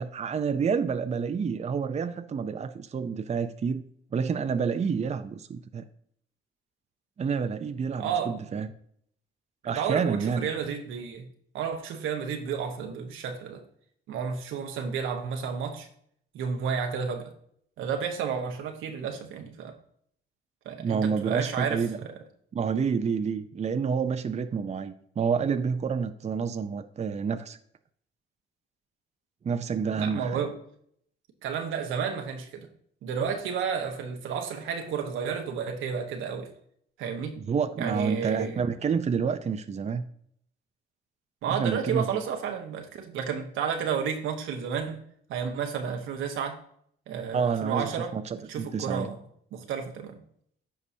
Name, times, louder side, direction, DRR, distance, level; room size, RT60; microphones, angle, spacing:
voice 1, 0.0-3.8 4.1-5.8 7.2-8.7 9.6-10.5 20.8-22.0 22.5-27.6 29.4-30.4 37.4-40.0 41.5-42.1 47.3-49.1, right 6 dB, 35° right, 9 dB, 0.6 m, -29 dB
voice 2, 8.0-8.5 9.6-11.3 11.5-13.6 14.1-15.9 16.3-17.3 17.8-19.7 20.6-22.2 29.9-30.5 31.4-32.7 33.0-36.5 37.0-37.3 37.8-38.6 41.4-45.0 45.3-46.6 47.1-48.1 48.5-49.2 49.5-50.2, right 7 dB, 85° right, 4 dB, 1.3 m, -31 dB
14.0 x 4.8 x 2.8 m, 0.66 s
cardioid pair, 90°, 20 cm